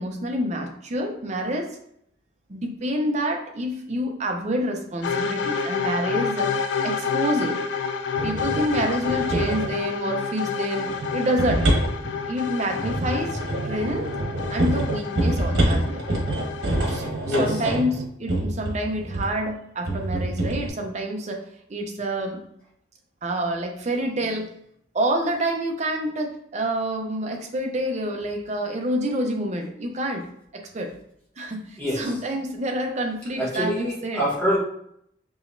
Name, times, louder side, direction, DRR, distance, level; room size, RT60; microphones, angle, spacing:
voice 1, 0.0-1.8 2.5-6.5 6.8-7.6 8.2-11.7 12.3-13.4 13.6-14.1 14.5-16.0 16.9-21.4 21.7-22.4 23.2-24.5 24.9-30.3 30.5-30.9 31.4-34.2, right 1 dB, 35° right, 3 dB, 0.6 m, -27 dB
sound 1, 5.0-17.1, left 6 dB, 65° left, 0.3 m, -29 dB
sound 2, 8.2-9.8 10.9-19.4 19.9-20.7, right 1 dB, 90° right, 1.1 m, -26 dB
voice 2, 17.2-17.6 31.8-32.1 33.4-34.6, equal, 10° left, -6 dB, 1.1 m, -25 dB
4.9 x 3.0 x 2.6 m, 0.71 s
head